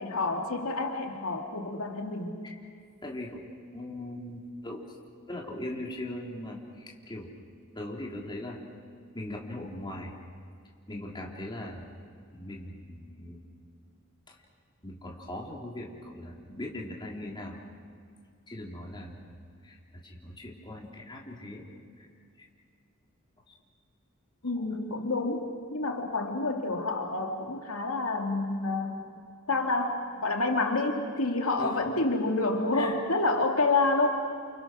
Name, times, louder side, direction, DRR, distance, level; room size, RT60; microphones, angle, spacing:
voice 1, 0.0-2.4 24.4-29.1 29.5-34.1, left 3 dB, 80° left, 2 dB, 2.6 m, -28 dB
voice 2, 3.0-3.5 3.7-4.9 5.3-7.3 7.8-8.6 9.1-10.1 10.9-11.9 12.3-13.4 14.3-14.4 14.8-17.6 18.5-19.3 19.6-19.8 20.0-21.7 22.0-22.1 23.5-23.6 24.6-24.7 31.6-31.9 32.7-32.9, left 1 dB, 20° left, -2 dB, 3.6 m, -40 dB
30.0 x 28.0 x 6.3 m, 2.3 s
head